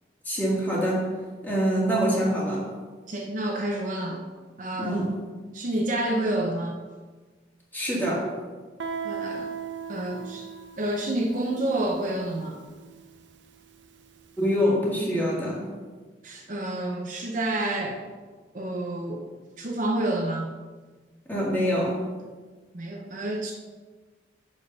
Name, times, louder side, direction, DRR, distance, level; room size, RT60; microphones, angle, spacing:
voice 1, 0.3-1.1 1.4-2.7 4.8-5.1 7.7-8.3 14.4-15.6 21.3-22.0, equal, 10° left, -5 dB, 2.0 m, -25 dB
voice 2, 3.1-4.2 4.6-5.1 5.5-6.8 9.0-9.5 9.9-10.5 10.8-12.6 16.2-18.0 18.5-19.3 19.6-20.5 22.7-23.5, right 1 dB, 45° right, 0 dB, 0.8 m, -29 dB
Guitar, 8.8-14.2, right 6 dB, 80° right, 0.6 m, -38 dB
6.4 x 5.2 x 5.4 m, 1.4 s
head